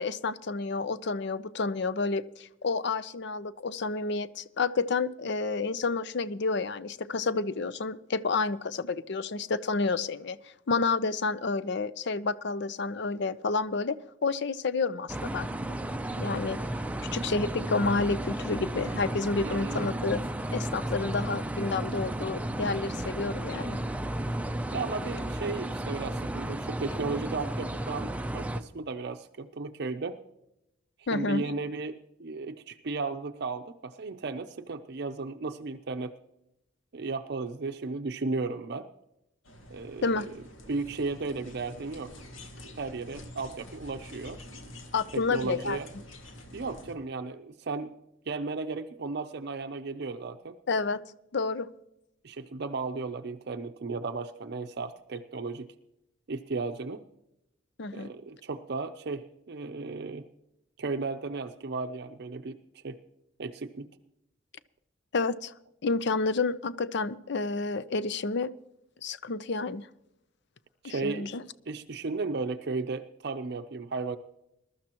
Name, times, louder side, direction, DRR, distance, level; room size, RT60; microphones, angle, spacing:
voice 1, 0.0-14.0 14.2-15.9 16.2-16.6 17.1-20.3 20.5-23.8 31.1-31.5 40.0-40.3 44.9-45.8 50.7-51.0 51.3-51.7 57.8-58.1 65.1-65.5 65.8-68.5 69.0-69.9 70.8-71.4, left 4 dB, 60° left, 15 dB, 0.6 m, -30 dB
sound 1, 15.1-28.6, right 1 dB, 5° right, 0.5 m, -33 dB
voice 2, 19.4-19.9 24.7-30.2 31.1-36.2 36.9-38.9 39.7-40.3 40.7-42.1 42.8-44.4 45.1-45.9 46.5-48.0 48.3-50.6 52.2-55.7 56.3-57.1 57.9-60.3 60.8-63.0 63.4-63.9 70.8-71.3 71.7-74.2, right 3 dB, 55° right, 7 dB, 0.6 m, -35 dB
sound 2, 39.4-46.9, left 1 dB, 80° left, 1.7 m, -47 dB
21.5 x 12.5 x 3.0 m, 0.86 s
head